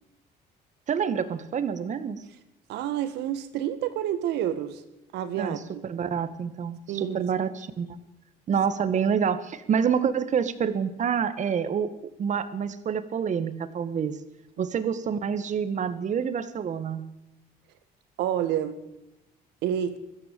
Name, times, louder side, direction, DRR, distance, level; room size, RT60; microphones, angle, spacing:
voice 1, 0.9-2.2 5.4-8.0 8.5-11.9 12.2-14.2 14.6-17.0, right 7 dB, 45° right, 12 dB, 1.8 m, -27 dB
voice 2, 2.7-4.8 5.1-5.8 6.9-7.2 14.6-14.7 18.2-18.8 19.6-20.0, right 10 dB, 85° right, 12 dB, 2.1 m, -29 dB
21.5 x 15.0 x 8.6 m, 0.92 s
cardioid pair, 110°, 17 cm